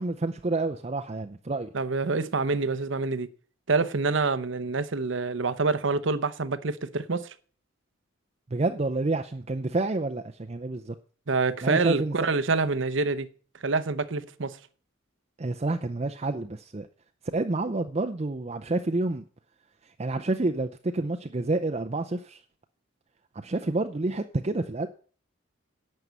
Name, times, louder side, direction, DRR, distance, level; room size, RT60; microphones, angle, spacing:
voice 1, 0.0-1.7 8.5-10.9 11.6-12.3 15.4-16.9 17.3-19.2 19.8-22.4 23.3-24.9, right 2 dB, 30° right, 0.5 m, -29 dB
voice 2, 1.7-3.3 3.7-7.3 11.3-13.3 13.6-14.6, right 3 dB, 65° right, 0.8 m, -26 dB
11.0 x 5.6 x 8.1 m
head